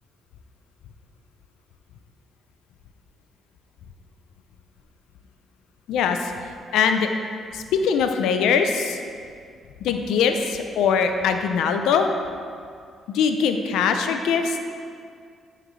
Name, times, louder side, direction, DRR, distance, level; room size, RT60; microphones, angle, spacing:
voice 1, 5.9-6.3 6.7-7.1 7.5-9.0 9.8-12.1 13.1-14.6, left 6 dB, 85° left, 6 dB, 0.4 m, -22 dB
8.7 x 5.0 x 3.2 m, 2.2 s
cardioid pair, 90°, 0 cm